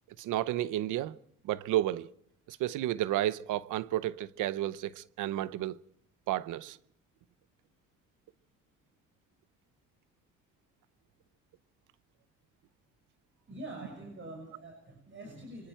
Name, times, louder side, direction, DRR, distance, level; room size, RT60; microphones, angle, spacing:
voice 1, 0.2-1.2 1.4-2.1 2.5-5.8 6.3-6.8, right 13 dB, 85° right, 0.8 m, -32 dB
voice 2, 13.5-15.7, right 1 dB, 40° right, 6.3 m, -45 dB
25.5 x 24.5 x 4.5 m
cardioid pair, 90°, 30 cm